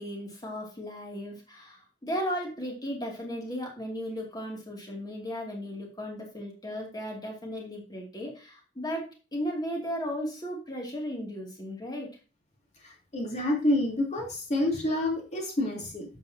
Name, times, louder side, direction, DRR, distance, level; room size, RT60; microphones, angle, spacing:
voice 1, 0.0-12.1, equal, 20° left, 0 dB, 2.5 m, -35 dB
voice 2, 12.8-16.1, left 1 dB, 35° left, -1 dB, 3.3 m, -28 dB
11.0 x 7.7 x 2.8 m, 0.33 s
head